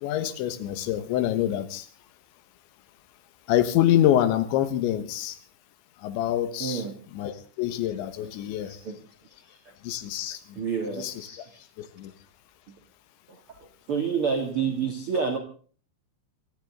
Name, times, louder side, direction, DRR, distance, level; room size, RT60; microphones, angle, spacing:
voice 1, 0.0-1.9 3.5-5.4 6.0-6.9 7.1-8.7 9.8-10.6 11.0-11.3 11.8-12.1, left 12 dB, 75° left, 10 dB, 3.4 m, -26 dB
voice 2, 6.6-6.9 8.6-8.9 9.5-9.6 10.5-11.6 13.9-15.4, right 6 dB, 75° right, 5 dB, 1.2 m, -28 dB
24.0 x 13.5 x 3.7 m, 0.42 s
omnidirectional pair, 5.6 m